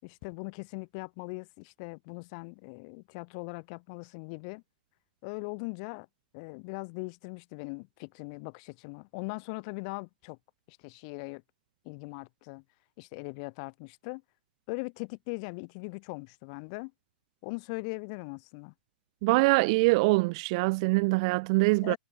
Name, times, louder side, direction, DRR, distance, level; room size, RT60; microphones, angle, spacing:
voice 1, 0.0-4.6 5.2-6.1 6.3-10.4 10.7-11.4 11.8-12.6 13.0-14.2 14.7-16.9 17.4-18.7 21.8-22.0, left 33 dB, 40° left, 4.6 m, -40 dB
voice 2, 19.2-21.9, right 26 dB, 40° right, 0.4 m, -24 dB
figure-of-eight pair, 110°, 5 cm